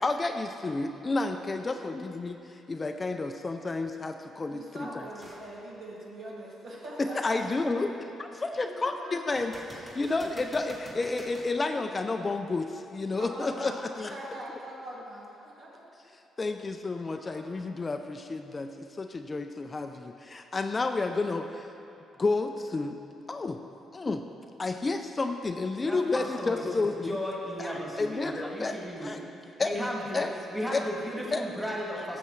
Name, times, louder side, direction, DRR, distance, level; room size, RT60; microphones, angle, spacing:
voice 1, 0.0-4.9 7.0-7.9 8.2-13.7 14.0-14.1 16.4-21.7 22.2-23.0 23.3-23.6 23.9-24.2 24.6-27.2 27.6-28.8 29.0-29.2 29.6-29.7 30.1-30.3 30.7-30.8 31.3-31.5, left 3 dB, 30° left, 6 dB, 0.4 m, -31 dB
voice 2, 1.5-1.9 4.5-7.4 7.7-7.9 8.6-10.3 11.7-12.2 13.0-15.8 17.1-17.6, right 1 dB, 65° right, -5 dB, 2.3 m, -43 dB
sound 1, 5.2-5.5 6.1-6.2 9.3-11.6 15.2-15.3, right 1 dB, 25° right, 2.0 m, -47 dB
voice 3, 25.8-29.3 29.6-30.2 30.5-32.2, equal, 5° right, -4 dB, 2.0 m, -35 dB
14.5 x 7.0 x 3.2 m, 2.8 s
cardioid pair, 90°, 0 cm